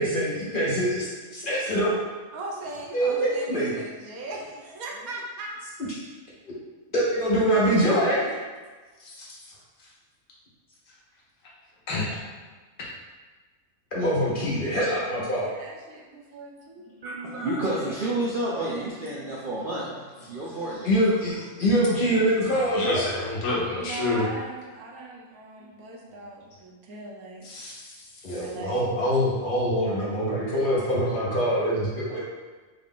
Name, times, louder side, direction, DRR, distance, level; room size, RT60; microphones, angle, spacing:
voice 1, 0.0-1.9 2.9-3.8 6.9-8.3 13.9-15.5 20.8-23.1 28.2-32.2, equal, 45° left, -6 dB, 0.8 m, -24 dB
voice 2, 2.3-5.6 15.4-16.9 23.8-27.5 28.2-28.9, right 2 dB, 80° right, -2 dB, 1.2 m, -39 dB
voice 3, 17.0-20.9, right 1 dB, 60° right, -6 dB, 0.5 m, -30 dB
voice 4, 22.5-24.3 27.4-28.4, left 2 dB, 65° left, -4 dB, 1.2 m, -30 dB
3.7 x 2.4 x 3.6 m, 1.3 s
omnidirectional pair, 1.5 m